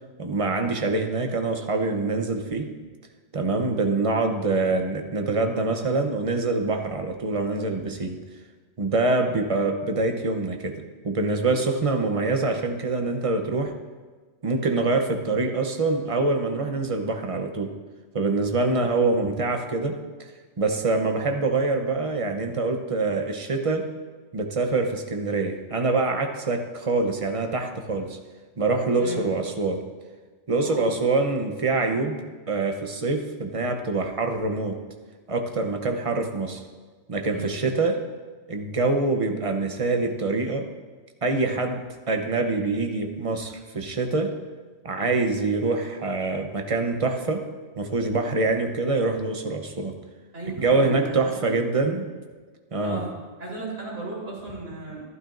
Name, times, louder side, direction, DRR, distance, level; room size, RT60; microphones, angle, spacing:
voice 1, 0.2-2.7 3.3-8.2 8.8-13.7 14.4-17.7 18.1-20.0 20.6-23.9 24.3-28.2 28.6-29.9 30.5-34.8 35.3-36.6 37.1-38.0 38.5-40.7 41.2-44.3 44.8-47.5 47.8-49.9 50.6-52.1 52.7-53.1, right 3 dB, 30° right, 5 dB, 0.8 m, -25 dB
voice 2, 29.0-29.3 30.6-31.0 37.3-37.5 50.3-51.5 52.8-53.1 53.4-55.1, right 2 dB, 85° right, -7 dB, 4.2 m, -35 dB
12.5 x 12.0 x 2.6 m, 1.4 s
omnidirectional pair, 1.3 m